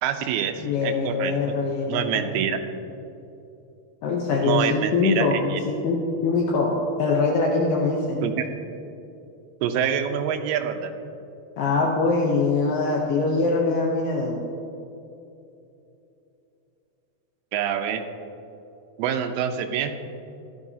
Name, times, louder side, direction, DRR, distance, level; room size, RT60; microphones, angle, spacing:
voice 1, 0.0-1.3 1.9-2.6 4.4-5.6 8.2-8.5 9.6-10.9 17.5-18.0 19.0-19.9, right 8 dB, 80° right, 6 dB, 2.5 m, -26 dB
voice 2, 0.6-2.4 4.0-8.3 11.6-14.4, left 3 dB, 75° left, -1 dB, 2.2 m, -23 dB
13.5 x 12.0 x 2.8 m, 2.9 s
omnidirectional pair, 4.6 m